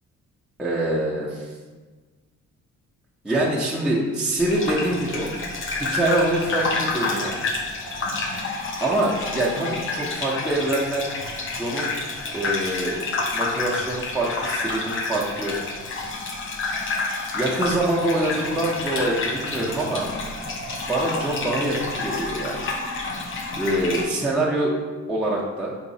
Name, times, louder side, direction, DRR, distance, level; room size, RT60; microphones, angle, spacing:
voice 1, 0.6-1.5 3.2-5.3 5.8-7.3 8.8-11.0 11.5-11.9 12.3-13.0 13.3-15.6 17.3-20.1 20.9-22.6 23.6-24.8 25.1-25.7, right 1 dB, 5° right, -6 dB, 0.6 m, -24 dB
Gurgling / Bathtub (filling or washing), 4.4-24.0, left 3 dB, 45° left, 0.6 m, -29 dB
4.0 x 3.0 x 2.7 m, 1.3 s
cardioid pair, 90°, 30 cm